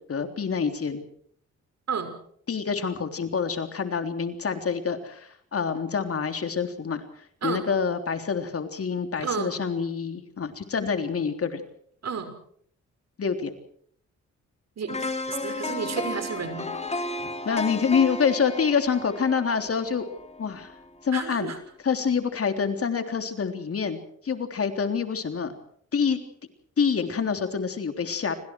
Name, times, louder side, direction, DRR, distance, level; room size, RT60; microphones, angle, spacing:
voice 1, 0.1-1.0 2.5-11.6 13.2-13.5 15.5-15.6 17.5-20.0 20.4-20.7 21.0-21.5 21.8-25.5 25.9-26.2 26.8-28.4, left 6 dB, 50° left, 7 dB, 3.5 m, -27 dB
voice 2, 9.2-9.6 12.0-12.3 14.8-16.7 21.1-21.6, right 6 dB, 60° right, 9 dB, 5.9 m, -32 dB
sound 1, 14.9-20.9 21.3-21.4, left 2 dB, 20° left, 3.5 m, -34 dB
29.5 x 25.0 x 4.8 m, 0.62 s
cardioid pair, 90°, 29 cm